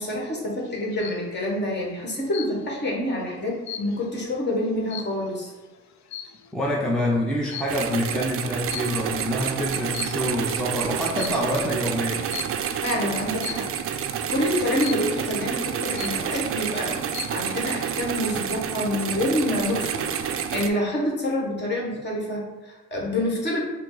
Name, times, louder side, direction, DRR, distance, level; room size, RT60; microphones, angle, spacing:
voice 1, 0.0-5.5 12.5-13.7 13.9-17.0 17.3-23.6, left 1 dB, 35° left, -2 dB, 1.4 m, -27 dB
sound 1, 0.6-1.3 2.3-2.9 3.2-5.5 6.1-6.5 7.5-7.9 8.7-9.3 9.8-10.5 11.2-11.5 12.3-12.7 13.4-13.8 14.8-15.3 15.7-15.8 16.0-16.6 16.9-17.5, left 9 dB, 65° left, 0.4 m, -38 dB
voice 2, 6.5-12.3, equal, ahead, -4 dB, 0.6 m, -26 dB
sound 2, 7.7-20.7, right 8 dB, 50° right, 0.4 m, -29 dB
5.0 x 2.0 x 3.9 m, 1.2 s
cardioid pair, 90°, 30 cm